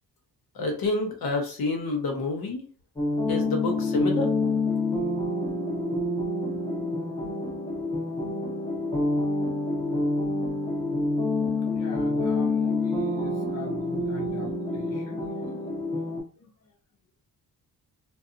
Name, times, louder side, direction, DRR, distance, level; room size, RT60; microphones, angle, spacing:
voice 1, 0.5-2.6 3.3-4.3, left 3 dB, 70° left, 1.0 m, -28 dB
sound 1, 3.0-16.2, left 2 dB, 10° left, 0.8 m, -27 dB
voice 2, 11.7-15.9 16.4-16.5, left 4 dB, 40° left, 0.5 m, -42 dB
2.6 x 2.2 x 2.5 m
cardioid pair, 85°, 38 cm